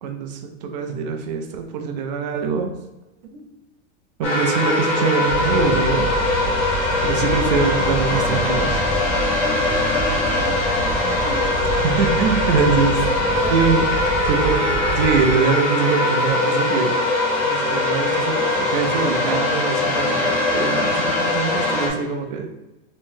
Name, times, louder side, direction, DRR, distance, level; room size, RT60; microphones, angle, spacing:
voice 1, 0.0-2.7 4.2-6.2 7.0-8.8 11.8-13.1 13.5-13.9 14.3-16.9 17.4-22.5, right 5 dB, 40° right, 4 dB, 0.4 m, -23 dB
sound 1, 4.2-21.9, left 2 dB, 20° left, 0.5 m, -21 dB
sound 2, 5.3-15.3, right 3 dB, 50° left, 1.0 m, -28 dB
voice 2, 9.4-11.4 11.8-12.0 13.1-13.8, right 3 dB, 75° right, 1 dB, 1.0 m, -35 dB
3.6 x 3.1 x 2.6 m, 1.0 s
supercardioid pair, 170°, 35 cm